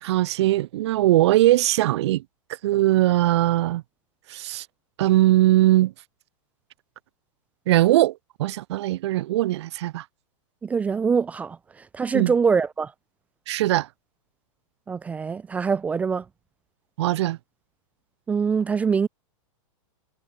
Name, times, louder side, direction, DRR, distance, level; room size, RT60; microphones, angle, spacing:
voice 1, 0.0-2.2 2.6-3.8 4.3-4.7 5.0-5.9 7.7-10.0 12.1-12.3 13.5-13.9 17.0-17.4, right 15 dB, 55° right, 2.0 m, -20 dB
voice 2, 10.6-11.6 11.9-12.9 14.9-16.2 18.3-19.1, right 5 dB, 10° right, 0.5 m, -23 dB
supercardioid pair, 165°, 17 cm